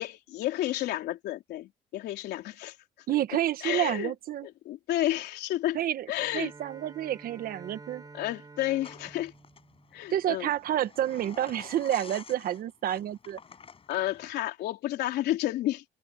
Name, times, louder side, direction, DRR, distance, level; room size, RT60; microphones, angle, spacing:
voice 1, 0.0-2.8 3.6-4.1 4.4-5.8 6.1-6.5 8.1-9.3 9.9-10.5 13.9-15.8, left 14 dB, 75° left, 3.7 m, -31 dB
voice 2, 3.1-4.5 5.7-6.1 6.3-8.0 10.1-13.4, right 12 dB, 60° right, 1.4 m, -29 dB
Bowed string instrument, 6.1-10.6, right 3 dB, 20° right, 7.7 m, -50 dB
sound 1, 8.8-14.3, left 6 dB, 35° left, 7.3 m, -50 dB
cardioid pair, 110°, 17 cm